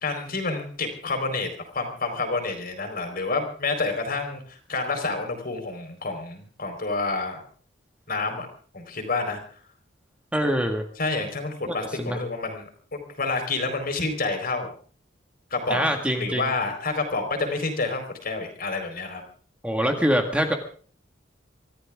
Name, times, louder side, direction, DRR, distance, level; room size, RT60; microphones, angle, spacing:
voice 1, 0.0-7.4 8.1-8.5 8.7-9.4 11.0-14.7 15.5-19.2, left 3 dB, 50° left, 5 dB, 4.3 m, -29 dB
voice 2, 10.3-10.8 11.7-12.2 15.7-16.5 19.6-20.5, equal, 5° right, 3 dB, 1.8 m, -24 dB
25.0 x 14.0 x 3.6 m, 0.42 s
head